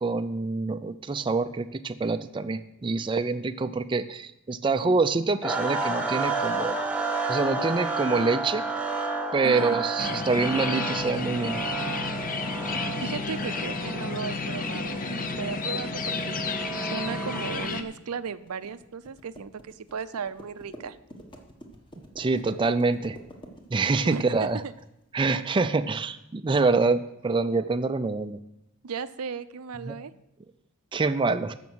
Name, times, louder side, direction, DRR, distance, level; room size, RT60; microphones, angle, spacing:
voice 1, 0.0-6.8 7.3-8.6 9.3-11.6 22.2-23.2 23.7-24.6 25.1-28.4 29.9-30.0 30.9-31.5, right 3 dB, 20° right, 9 dB, 0.4 m, -26 dB
sound 1, 5.4-17.8, right 3 dB, 5° right, 1.1 m, -32 dB
voice 2, 9.4-9.8 13.0-16.4 16.9-21.0 24.0-24.4 24.6-24.7 28.8-30.1, right 5 dB, 80° right, 13 dB, 0.5 m, -35 dB
sound 2, 10.0-17.8, left 4 dB, 40° left, 0.7 m, -32 dB
sound 3, 13.3-24.9, equal, 20° left, 1.3 m, -49 dB
14.5 x 5.9 x 6.2 m, 0.85 s
head